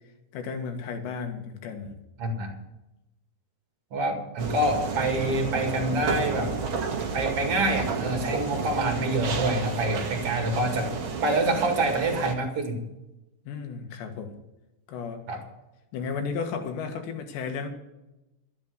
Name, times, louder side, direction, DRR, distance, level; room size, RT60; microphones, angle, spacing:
voice 1, 0.3-1.9 13.5-14.3 14.9-15.2 15.9-17.7, left 5 dB, 85° left, 5 dB, 3.8 m, -33 dB
voice 2, 2.2-2.5 3.9-6.5 7.1-10.9 11.2-12.8 15.3-15.4, right 2 dB, 45° right, 4 dB, 2.4 m, -26 dB
sound 1, 4.4-12.3, right 5 dB, 90° right, 1.1 m, -31 dB
13.0 x 8.4 x 8.0 m, 0.96 s
omnidirectional pair, 4.9 m